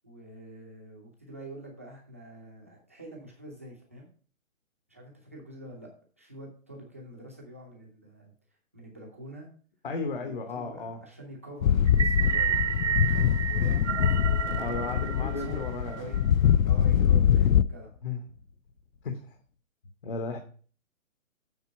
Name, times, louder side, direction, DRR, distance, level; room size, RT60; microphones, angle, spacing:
voice 1, 0.0-4.1 4.9-5.9 6.2-8.3 8.7-9.5 10.1-14.0 14.3-14.6 15.1-16.2 16.6-18.2, right 1 dB, 10° right, -1 dB, 0.6 m, -46 dB
voice 2, 9.8-11.0 14.5-16.3 18.0-18.2 19.0-19.4 20.0-20.4, left 4 dB, 40° left, 5 dB, 1.0 m, -35 dB
sound 1, 11.6-17.6, left 9 dB, 75° left, 0.6 m, -23 dB
sound 2, 11.9-16.2, right 9 dB, 60° right, 0.7 m, -31 dB
sound 3, 14.4-19.1, left 4 dB, 60° left, 1.1 m, -45 dB
8.0 x 4.9 x 5.5 m, 0.41 s
hypercardioid pair, 175°, 41 cm